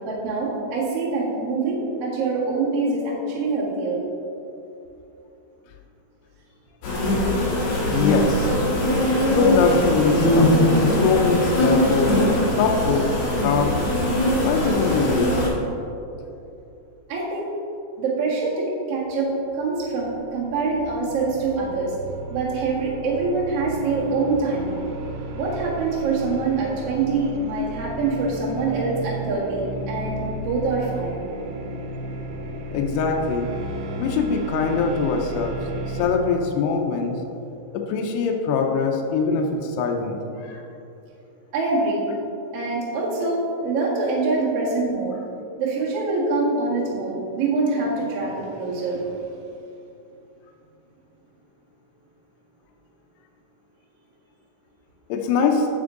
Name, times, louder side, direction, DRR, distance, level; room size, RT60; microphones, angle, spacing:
voice 1, 0.0-4.0 17.1-17.5 18.0-21.9 22.3-24.8 25.3-31.3 41.5-42.0 42.5-45.2 45.6-49.1, right 3 dB, 60° right, -5 dB, 1.6 m, -25 dB
sound 1, 6.8-15.5, left 1 dB, 55° left, 2.3 m, -21 dB
voice 2, 7.9-8.5 9.3-10.5 10.8-12.2 12.6-13.1 13.4-13.8 14.4-15.4 32.7-33.5 34.0-35.6 35.9-37.2 37.7-40.6 55.1-55.7, left 5 dB, 85° left, 3 dB, 2.4 m, -22 dB
sound 2, 19.6-36.1, right 2 dB, 90° right, 3.1 m, -34 dB
9.8 x 7.0 x 3.8 m, 2.7 s
omnidirectional pair, 5.5 m